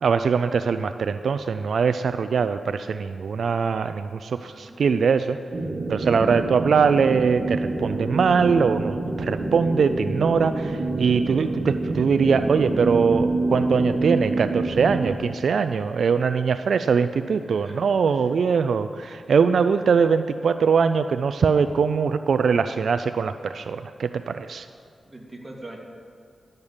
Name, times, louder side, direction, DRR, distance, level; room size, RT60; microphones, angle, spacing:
voice 1, 0.0-5.4 5.9-24.7, right 6 dB, 80° right, 10 dB, 0.3 m, -22 dB
voice 2, 4.3-4.9 17.4-17.8 18.1-18.3 25.0-25.8, right 2 dB, 20° right, -2 dB, 2.3 m, -43 dB
sound 1, 5.5-15.2, right 2 dB, 60° right, 1.2 m, -27 dB
12.0 x 6.6 x 7.1 m, 2.3 s
cardioid pair, 70°, 0 cm